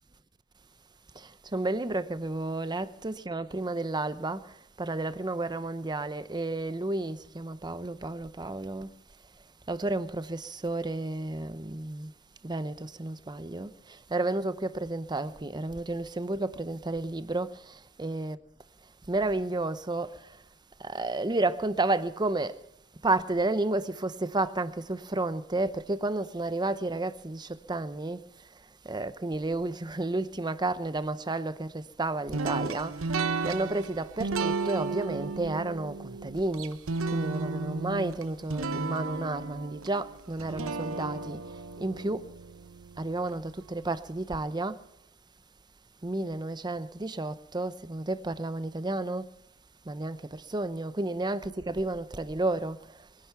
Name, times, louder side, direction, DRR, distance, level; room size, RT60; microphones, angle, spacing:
voice 1, 1.1-8.9 9.7-12.1 12.4-18.4 19.1-20.4 20.8-22.6 23.0-28.2 28.8-36.8 37.1-42.2 43.0-44.8 46.0-49.3 49.9-53.1, right 2 dB, 20° right, 0.7 m, -32 dB
sound 1, 32.3-43.4, right 4 dB, 75° right, 0.8 m, -34 dB
22.5 x 10.5 x 5.7 m
head